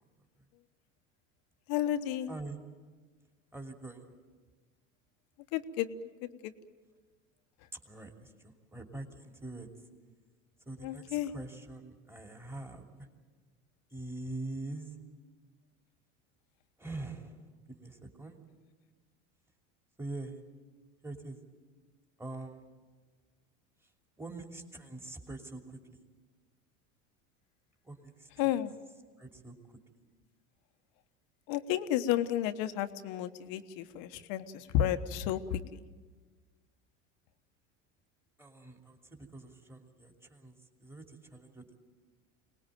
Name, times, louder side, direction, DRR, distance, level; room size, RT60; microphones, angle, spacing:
voice 1, 1.7-2.3 5.5-5.9 6.4-6.5 10.8-11.3 28.4-28.7 31.5-35.8, left 11 dB, 60° left, 10 dB, 1.2 m, -32 dB
voice 2, 2.3-2.6 3.5-4.1 7.8-9.7 10.7-13.0 13.9-14.9 16.8-18.4 20.0-20.4 21.0-21.4 22.2-22.6 24.2-25.8 27.9-28.3 29.2-29.5 38.4-40.5 40.8-41.8, right 2 dB, 5° right, 3 dB, 2.9 m, -44 dB
24.0 x 19.5 x 9.2 m, 1.4 s
hypercardioid pair, 90°, 38 cm